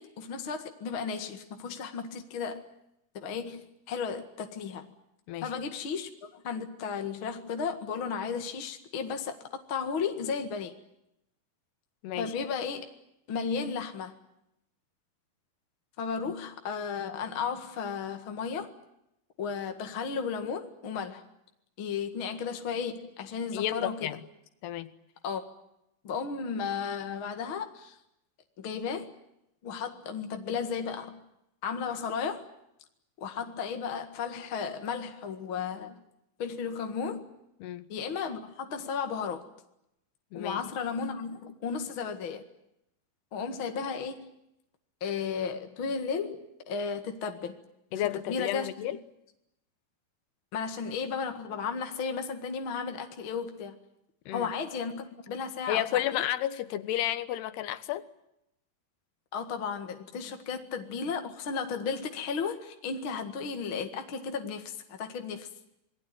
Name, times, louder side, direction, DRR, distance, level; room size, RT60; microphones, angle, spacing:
voice 1, 0.0-2.7 3.1-4.9 5.4-9.4 9.7-10.7 12.2-12.9 13.3-14.1 16.0-18.7 19.4-21.2 21.8-24.1 25.2-25.4 26.0-28.0 28.6-29.1 29.6-31.3 31.6-32.5 33.2-36.0 36.4-37.3 37.9-39.5 40.3-42.4 43.3-44.3 45.0-47.5 48.3-48.7 50.5-53.8 54.3-55.8 56.1-56.3 59.3-65.5, left 6 dB, 45° left, 5 dB, 1.8 m, -34 dB
voice 2, 12.0-12.3 23.5-24.2 24.6-24.9 37.6-37.9 40.3-40.6 47.9-49.0 54.3-54.5 55.7-58.1, left 12 dB, 80° left, 13 dB, 3.3 m, -32 dB
27.0 x 20.5 x 9.1 m, 0.83 s
omnidirectional pair, 4.7 m